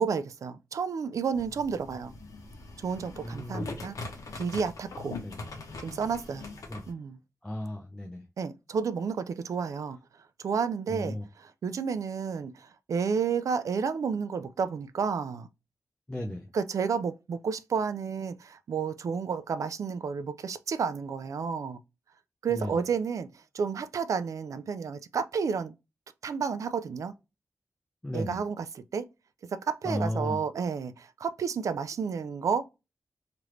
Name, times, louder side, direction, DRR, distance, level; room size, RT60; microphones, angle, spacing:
voice 1, 0.0-2.1 2.8-4.0 4.3-5.2 5.8-6.5 6.9-7.2 8.4-10.0 10.4-15.5 16.5-21.8 22.4-25.7 26.2-27.1 28.1-29.1 29.4-32.8, right 6 dB, 75° right, 0.3 m, -31 dB
sound 1, 1.3-6.9, left 3 dB, 80° left, 0.7 m, -42 dB
voice 2, 3.2-3.6 5.2-5.4 6.7-6.9 7.4-8.2 10.9-11.2 16.1-16.5 22.5-22.8 28.0-28.4 29.8-30.4, left 1 dB, 10° left, 0.4 m, -34 dB
3.1 x 2.5 x 3.0 m
wide cardioid pair, 165°, 6 cm